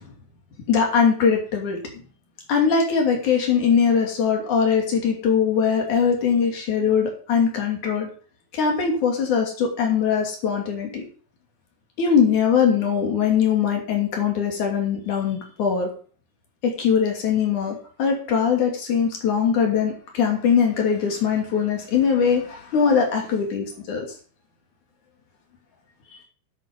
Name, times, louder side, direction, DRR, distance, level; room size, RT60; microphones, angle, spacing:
voice 1, 0.7-1.8 2.5-8.1 8.5-11.0 12.0-15.9 16.6-24.1, left 6 dB, 60° left, 2 dB, 4.1 m, -21 dB
10.5 x 8.7 x 5.3 m, 0.42 s
omnidirectional pair, 3.9 m